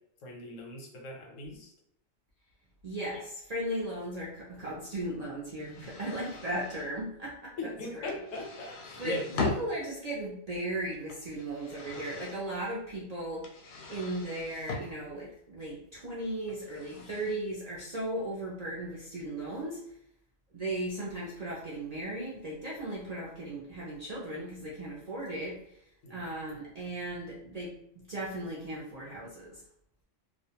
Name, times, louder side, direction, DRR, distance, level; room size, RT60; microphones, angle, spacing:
voice 1, 0.2-1.7 7.6-9.5 26.0-26.2, left 2 dB, 90° left, 0 dB, 1.1 m, -39 dB
voice 2, 2.8-8.2 9.0-13.5 13.9-19.8 20.5-25.6 26.1-29.6, right 1 dB, 55° right, -6 dB, 0.4 m, -37 dB
sound 1, 5.6-6.9 8.1-9.9 10.9-12.4 13.4-14.9 16.5-17.4, left 3 dB, 65° left, 0.7 m, -39 dB
2.4 x 2.2 x 2.8 m, 0.74 s
omnidirectional pair, 1.3 m